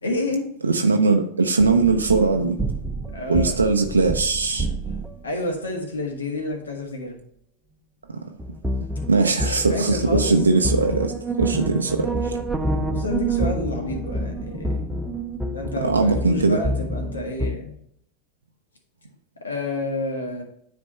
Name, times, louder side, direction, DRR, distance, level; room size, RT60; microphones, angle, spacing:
voice 1, 0.0-0.4 3.1-3.6 5.2-7.2 9.4-10.4 12.9-14.9 15.5-17.7 19.4-20.4, left 2 dB, 85° left, 1.6 m, -29 dB
voice 2, 0.6-2.6 3.3-4.7 9.1-11.1 11.4-12.4 15.8-16.6, right 4 dB, 90° right, 0.5 m, -20 dB
sound 1, 1.6-5.3 8.4-17.6, right 1 dB, 10° right, 0.8 m, -28 dB
9.7 x 3.4 x 4.3 m
hypercardioid pair, 95°, 0 cm